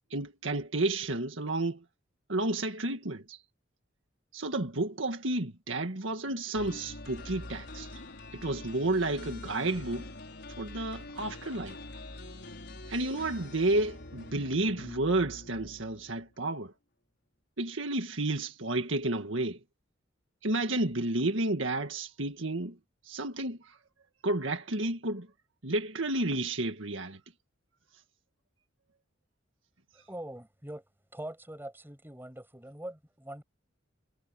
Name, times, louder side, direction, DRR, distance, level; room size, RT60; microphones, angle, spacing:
voice 1, 0.1-1.8 2.3-3.4 4.3-8.0 8.3-10.1 10.6-11.8 12.9-16.7 17.6-19.6 20.4-22.8 23.0-23.8 24.2-25.3 25.6-27.2, right 2 dB, 70° right, 1.9 m, -31 dB
sound 1, 6.5-16.4, left 2 dB, 60° left, 4.6 m, -45 dB
voice 2, 29.9-30.8 31.1-33.4, right 1 dB, 10° right, 7.7 m, -43 dB
head